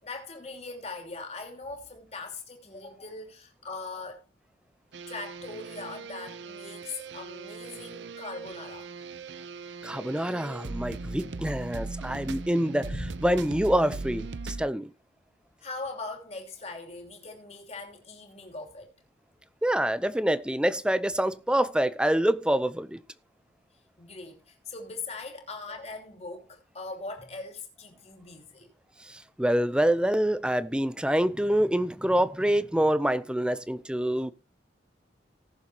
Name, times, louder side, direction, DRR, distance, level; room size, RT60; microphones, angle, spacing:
voice 1, 0.0-4.3 5.1-8.9 12.9-13.2 15.6-18.9 24.0-28.7, left 3 dB, 35° left, 2.9 m, -40 dB
sound 1, 4.9-14.7, right 3 dB, 70° right, 0.6 m, -39 dB
voice 2, 9.8-12.9 13.2-14.9 19.6-23.0 29.1-34.3, right 1 dB, 5° right, 0.6 m, -26 dB
18.5 x 7.1 x 2.9 m
head